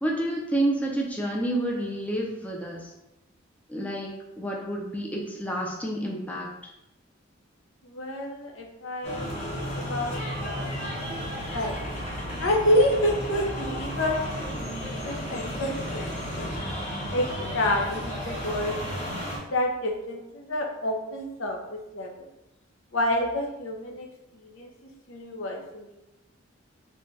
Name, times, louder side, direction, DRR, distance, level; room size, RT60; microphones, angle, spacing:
voice 1, 0.0-2.9 3.7-4.1 4.4-6.5, right 1 dB, 5° left, -2 dB, 0.4 m, -29 dB
voice 2, 7.8-11.8 12.1-16.5 17.1-19.2 19.5-22.3 22.9-24.1 24.3-26.0, left 1 dB, 75° left, 1 dB, 0.6 m, -29 dB
sound 1, 9.0-19.4, equal, 30° left, 0.9 m, -33 dB
3.4 x 2.2 x 3.9 m, 0.91 s
head